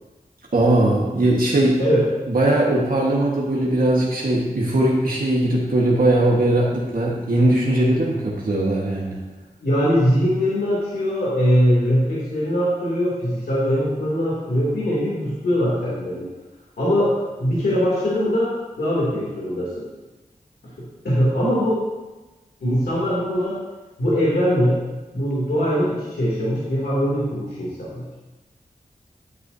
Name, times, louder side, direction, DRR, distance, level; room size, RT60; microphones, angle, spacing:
voice 1, 0.5-1.8 2.3-9.2, right 1 dB, 65° right, -4 dB, 1.5 m, -19 dB
voice 2, 9.6-16.3 16.8-17.1 17.4-19.8 20.8-21.8 22.6-23.6 24.0-24.8 25.1-28.0, equal, 85° left, -7 dB, 2.8 m, -21 dB
11.0 x 9.5 x 2.8 m, 1.2 s
cardioid pair, 45°, 16 cm